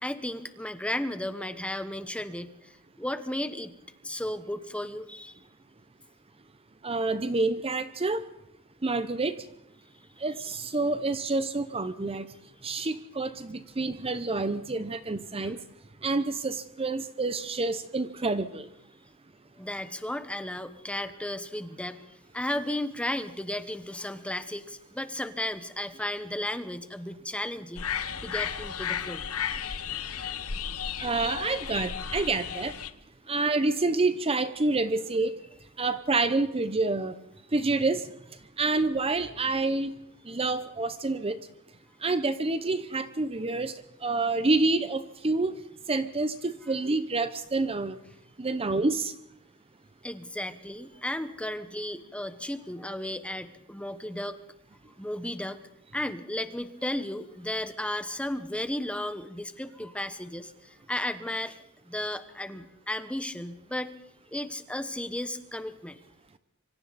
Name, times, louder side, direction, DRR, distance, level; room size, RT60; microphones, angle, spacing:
voice 1, 0.0-3.7 4.0-5.4 15.4-15.5 19.6-29.2 50.0-54.4 55.0-55.6 55.9-61.6 61.9-63.9 64.3-66.0, left 1 dB, 5° left, 10 dB, 1.2 m, -34 dB
voice 2, 6.8-8.2 8.8-9.4 10.2-12.3 12.6-15.6 16.0-18.7 31.0-32.7 33.3-35.3 35.8-37.2 37.5-38.1 38.6-39.9 40.3-41.4 42.0-43.7 44.0-45.6 45.9-48.0 48.4-49.1, right 3 dB, 25° right, 12 dB, 0.7 m, -28 dB
sound 1, 27.8-32.9, left 8 dB, 75° left, 1.1 m, -34 dB
26.0 x 24.5 x 4.2 m, 0.81 s
head